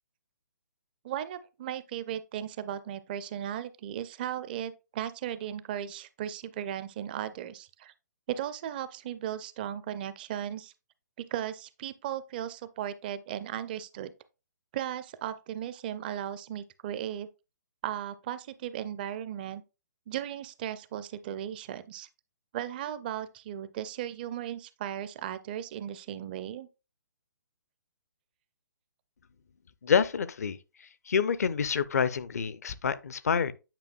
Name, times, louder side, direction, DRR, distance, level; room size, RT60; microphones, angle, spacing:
voice 1, 1.0-7.9 8.3-10.7 11.3-14.1 14.7-17.3 17.8-19.6 20.1-22.1 22.5-26.7, right 10 dB, 30° right, 0.4 m, -36 dB
voice 2, 29.8-33.5, left 6 dB, 55° left, 0.5 m, -28 dB
9.0 x 5.1 x 2.4 m
figure-of-eight pair, 130°, 10 cm